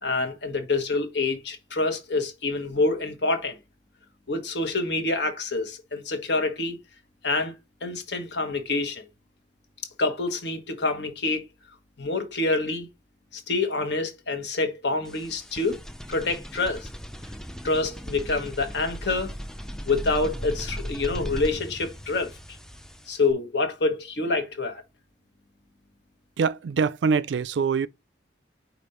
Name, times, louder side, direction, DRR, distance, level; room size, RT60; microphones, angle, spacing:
voice 1, 0.0-3.6 4.3-6.8 7.2-7.5 7.8-9.0 10.0-11.5 12.0-12.9 13.3-15.8 16.1-16.9 17.6-19.3 19.9-22.4 23.1-24.8, left 3 dB, 70° left, 1.3 m, -27 dB
sound 1, 15.0-23.3, equal, 5° left, 0.4 m, -37 dB
voice 2, 26.4-27.9, right 5 dB, 75° right, 0.4 m, -24 dB
5.2 x 4.2 x 4.3 m
head